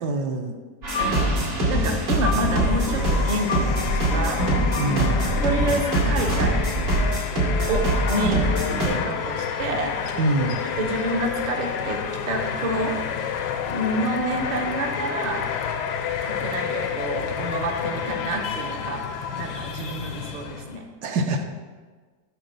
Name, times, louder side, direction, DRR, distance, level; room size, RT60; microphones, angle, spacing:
voice 1, 0.0-0.6 4.7-5.2 10.2-10.6 21.0-21.4, right 2 dB, 70° right, 5 dB, 1.2 m, -25 dB
sound 1, 0.8-6.0, left 4 dB, 55° left, 0.7 m, -31 dB
sound 2, 0.8-8.9, right 1 dB, 90° right, 3.2 m, -23 dB
voice 2, 1.0-1.4 1.7-4.5 5.4-6.7 7.7-10.0 10.8-12.0 12.3-13.0 13.7-15.4 16.2-19.0 19.4-20.8, right 2 dB, 50° right, 2 dB, 0.5 m, -28 dB
sound 3, 2.3-20.8, left 7 dB, 80° left, 1.2 m, -30 dB
8.0 x 3.8 x 6.6 m, 1.4 s
omnidirectional pair, 1.9 m